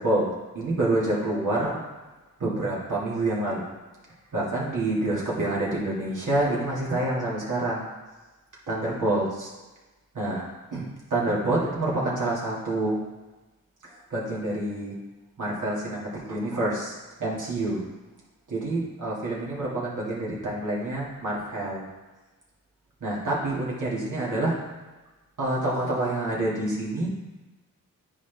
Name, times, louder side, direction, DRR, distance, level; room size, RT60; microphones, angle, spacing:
voice 1, 0.0-1.8 2.4-3.6 4.3-7.9 8.7-9.5 10.1-13.0 13.8-14.9 15.4-17.8 18.5-21.9 23.0-24.6 25.4-27.1, right 2 dB, 65° right, -5 dB, 2.4 m, -27 dB
9.8 x 4.1 x 3.5 m, 1.2 s
cardioid pair, 55°, 33 cm